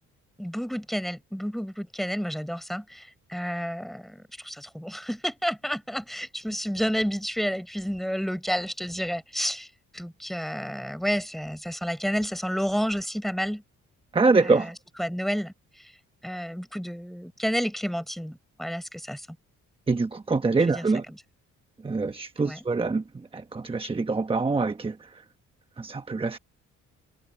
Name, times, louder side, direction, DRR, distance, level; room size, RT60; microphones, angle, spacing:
voice 1, 0.4-9.7 9.9-13.6 14.4-14.7 15.0-15.5 16.2-19.3 20.7-21.2 22.4-22.6, equal, ahead, 4.6 m, -30 dB
voice 2, 14.1-14.7 19.9-21.0 21.8-23.0 23.3-25.0 25.8-26.4, right 3 dB, 20° right, 1.0 m, -24 dB
cardioid pair, 90°, 30 cm